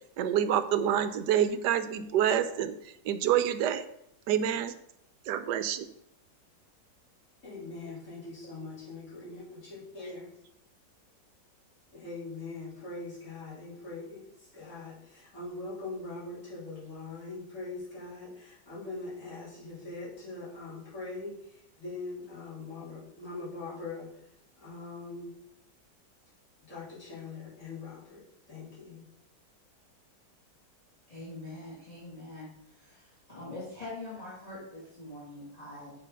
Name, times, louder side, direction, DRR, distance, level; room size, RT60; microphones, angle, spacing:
voice 1, 0.2-2.7 3.1-3.8 4.3-4.7 5.3-5.9, right 10 dB, 75° right, 11 dB, 1.2 m, -27 dB
voice 2, 7.4-10.2 11.9-24.2 24.6-25.3 26.7-29.0, left 3 dB, 40° left, -10 dB, 3.9 m, -42 dB
voice 3, 31.1-32.5 32.7-35.9, left 2 dB, 20° left, -8 dB, 2.5 m, -43 dB
7.3 x 5.1 x 5.5 m, 0.77 s
omnidirectional pair, 2.0 m